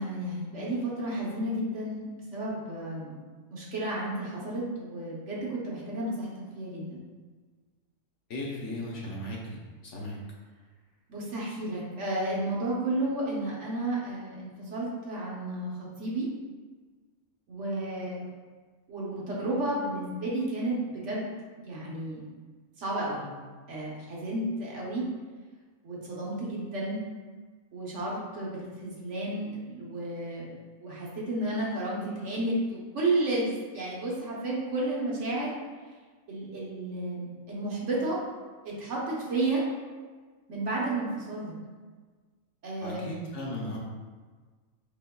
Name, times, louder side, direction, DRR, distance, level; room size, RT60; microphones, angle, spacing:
voice 1, 0.0-3.1 3.5-6.3 6.6-7.0 11.1-16.3 17.5-18.2 18.9-21.3 21.6-22.2 22.8-23.3 23.7-25.1 25.8-27.0 27.7-35.5 36.3-38.2 38.6-39.6 40.5-41.5 42.6-43.0, right 2 dB, 60° right, -5 dB, 1.1 m, -32 dB
voice 2, 8.3-9.4 9.9-10.1 42.8-43.8, left 1 dB, 65° left, -3 dB, 0.9 m, -36 dB
4.4 x 3.5 x 2.2 m, 1.4 s
omnidirectional pair, 1.5 m